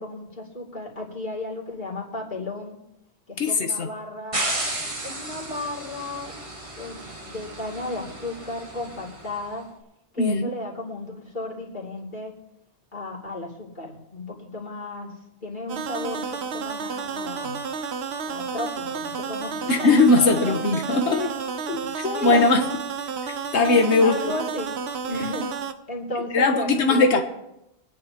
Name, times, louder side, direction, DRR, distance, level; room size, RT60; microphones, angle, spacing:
voice 1, 0.0-2.8 3.3-4.4 5.0-6.3 6.8-9.7 10.1-12.3 12.9-15.1 15.4-17.6 18.3-20.6 20.8-21.4 21.7-22.7 24.0-24.7 25.1-25.5 25.9-27.2, left 2 dB, 45° left, -4 dB, 2.9 m, -34 dB
voice 2, 3.4-3.9 10.2-10.5 19.7-21.2 22.2-22.6 23.5-24.2 26.3-27.2, left 3 dB, 90° left, 5 dB, 1.3 m, -19 dB
sound 1, 4.3-9.5, right 1 dB, 30° right, 1.5 m, -33 dB
sound 2, 15.7-25.7, right 6 dB, 70° right, 1.0 m, -31 dB
24.0 x 9.5 x 2.9 m, 0.87 s
omnidirectional pair, 1.1 m